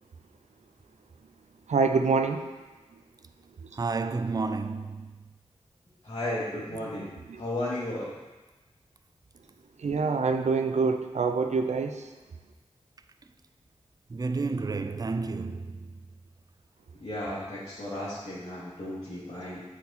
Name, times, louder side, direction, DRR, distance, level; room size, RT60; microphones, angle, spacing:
voice 1, 1.7-2.5 7.3-7.4 9.8-12.0, right 4 dB, 80° right, 0.6 m, -25 dB
voice 2, 3.7-5.2 14.1-16.0, right 4 dB, 35° right, 0.4 m, -31 dB
voice 3, 6.0-7.1 7.4-8.1 17.0-19.6, left 1 dB, 50° left, 2.5 m, -34 dB
8.2 x 4.7 x 4.3 m
cardioid pair, 45°, 12 cm